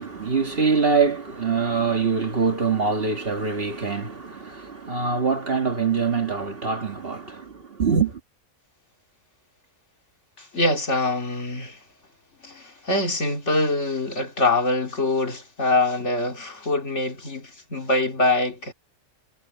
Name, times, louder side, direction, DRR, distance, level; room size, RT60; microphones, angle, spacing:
voice 1, 0.0-8.2, right 5 dB, 45° right, 1.9 m, -24 dB
voice 2, 10.4-11.8 12.4-18.7, left 2 dB, 55° left, 3.2 m, -24 dB
omnidirectional pair, 1.5 m